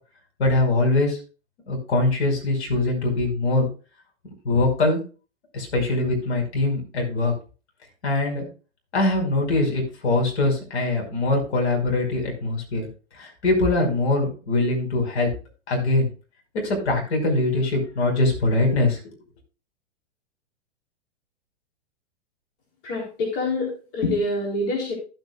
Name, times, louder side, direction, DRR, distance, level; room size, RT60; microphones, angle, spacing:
voice 1, 0.4-1.2 1.7-3.7 4.4-5.0 5.5-7.3 8.0-8.5 8.9-12.9 13.2-15.3 15.7-16.1 16.5-19.2, left 2 dB, 70° left, 1 dB, 5.5 m, -22 dB
voice 2, 22.8-24.9, left 2 dB, 45° left, -1 dB, 4.0 m, -26 dB
15.0 x 8.5 x 2.4 m, 0.35 s
hypercardioid pair, 110°, 34 cm